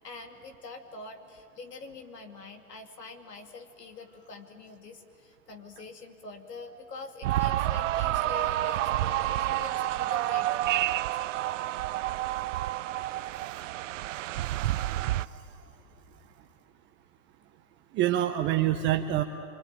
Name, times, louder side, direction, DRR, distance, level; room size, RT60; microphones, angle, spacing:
voice 1, 0.0-11.0 12.9-13.5, left 3 dB, 90° left, 4 dB, 2.7 m, -45 dB
sound 1, 7.2-15.3, right 14 dB, 55° right, 0.6 m, -29 dB
voice 2, 14.3-15.5 17.9-19.2, right 12 dB, 25° right, 5 dB, 0.8 m, -29 dB
25.5 x 24.5 x 9.1 m, 2.5 s
hypercardioid pair, 120°, 47 cm